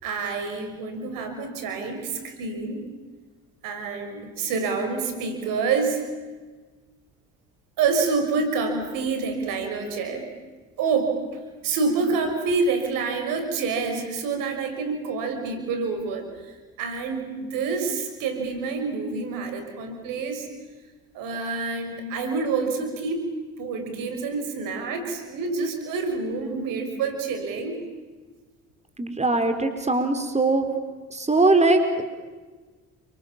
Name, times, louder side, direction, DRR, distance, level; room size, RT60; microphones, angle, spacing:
voice 1, 0.0-2.9 3.6-6.0 7.8-10.3 10.8-20.5 21.1-23.2 23.6-27.8, right 4 dB, 80° right, 6 dB, 5.9 m, -27 dB
voice 2, 29.0-30.8 31.1-32.0, right 2 dB, 20° right, 7 dB, 4.4 m, -21 dB
30.0 x 26.5 x 7.4 m, 1.3 s
supercardioid pair, 65°, 33 cm